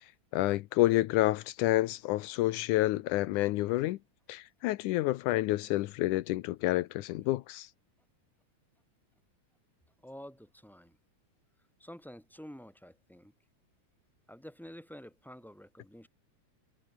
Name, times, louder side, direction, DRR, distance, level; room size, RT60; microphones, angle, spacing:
voice 1, 0.3-4.0 4.3-7.7, left 17 dB, 85° left, 2.2 m, -29 dB
voice 2, 10.0-11.0 11.8-13.3 14.3-16.1, equal, ahead, 6.8 m, -49 dB
omnidirectional pair, 3.5 m